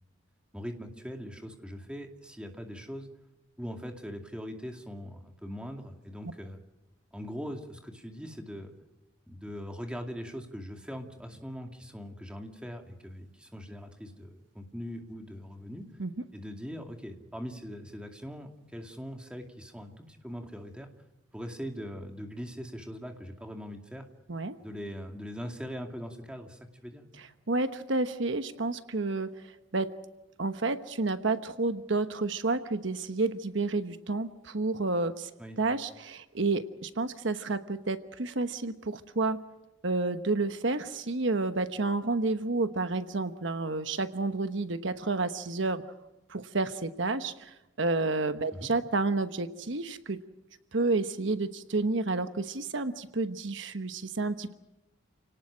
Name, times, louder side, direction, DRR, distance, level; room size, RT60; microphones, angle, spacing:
voice 1, 0.5-3.1 3.6-6.6 7.1-8.7 9.3-15.8 16.3-20.9 21.3-24.1 24.6-27.0 35.4-35.6 48.5-48.7, equal, 5° right, 3 dB, 2.4 m, -41 dB
voice 2, 27.2-29.9 30.4-35.3 35.6-39.4 39.8-45.8 46.3-50.2 50.7-54.5, right 3 dB, 65° right, 9 dB, 1.1 m, -30 dB
29.5 x 18.5 x 6.2 m, 1.0 s
head